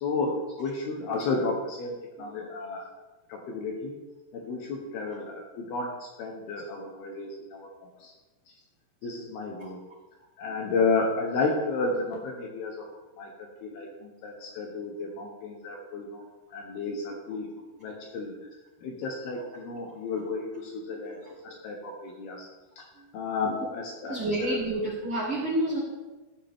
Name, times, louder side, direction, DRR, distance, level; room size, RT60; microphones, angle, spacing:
voice 1, 0.0-2.9 3.3-4.0 4.3-7.7 8.0-8.1 9.0-9.8 10.4-12.9 13.2-16.2 16.5-17.5 17.8-18.3 18.8-22.5 22.8-22.9 23.1-24.5, left 3 dB, 75° left, 1 dB, 2.3 m, -32 dB
voice 2, 21.0-21.8 22.9-23.1 24.1-25.8, right 1 dB, 40° right, -9 dB, 2.2 m, -31 dB
16.0 x 7.8 x 3.6 m, 1.2 s
omnidirectional pair, 5.9 m